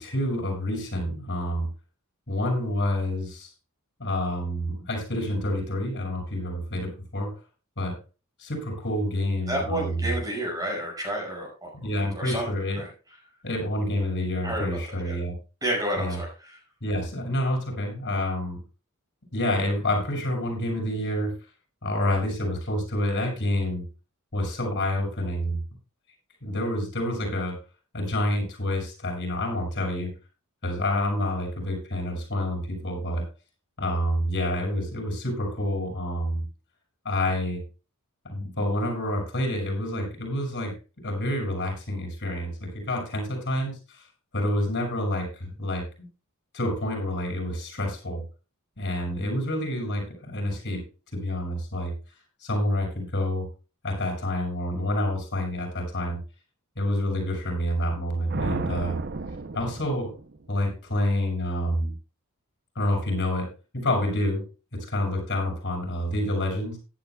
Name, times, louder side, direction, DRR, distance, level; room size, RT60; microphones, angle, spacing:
voice 1, 0.0-1.7 2.3-3.5 4.0-7.3 7.8-8.0 8.4-10.1 11.8-12.9 13.4-15.3 16.0-16.2 16.8-18.6 19.3-21.3 21.8-23.8 24.3-25.6 26.4-27.6 27.9-30.1 30.6-33.3 33.8-36.4 37.0-37.6 38.2-40.8 41.0-44.1 44.3-46.1 46.5-48.2 48.8-50.9 51.1-51.9 52.4-53.5 53.8-56.2 56.8-59.0 59.5-60.1 60.5-61.9 62.7-64.4 64.7-66.8, left 1 dB, 50° left, 1 dB, 6.7 m, -28 dB
voice 2, 9.5-11.7 12.1-12.5 12.8-12.9 14.4-15.2 15.6-16.3, right 1 dB, 15° right, 0 dB, 5.7 m, -30 dB
sound 1, 58.3-60.6, right 3 dB, 50° right, 0.7 m, -33 dB
17.0 x 11.0 x 2.3 m, 0.32 s
head